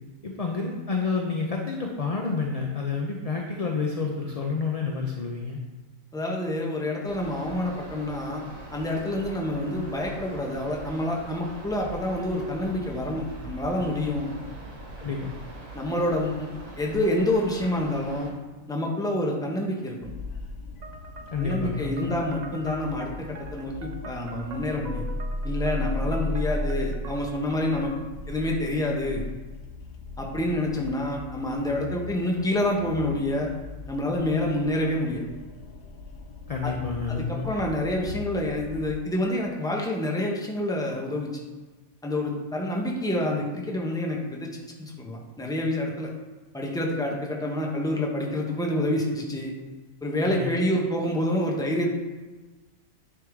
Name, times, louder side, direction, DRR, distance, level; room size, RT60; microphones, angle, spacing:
voice 1, 0.2-5.6 15.0-15.3 21.3-22.1 36.5-37.4 50.2-50.6, left 4 dB, 45° left, 1 dB, 0.5 m, -29 dB
voice 2, 6.1-8.4 8.7-14.3 15.7-16.5 16.8-18.3 18.7-20.1 21.4-25.1 25.4-27.9 28.3-29.2 30.2-33.5 33.9-35.2 36.6-36.7 37.1-41.3 42.0-44.5 44.8-46.1 46.5-49.5 50.0-51.9, left 1 dB, 5° left, -1 dB, 0.7 m, -27 dB
sound 1, 7.0-18.3, right 1 dB, 80° right, 1.6 m, -42 dB
sound 2, 20.0-38.9, left 2 dB, 85° left, 1.1 m, -37 dB
sound 3, 20.8-28.2, right 3 dB, 65° right, 0.4 m, -45 dB
9.4 x 3.7 x 3.5 m, 1.2 s
omnidirectional pair, 1.4 m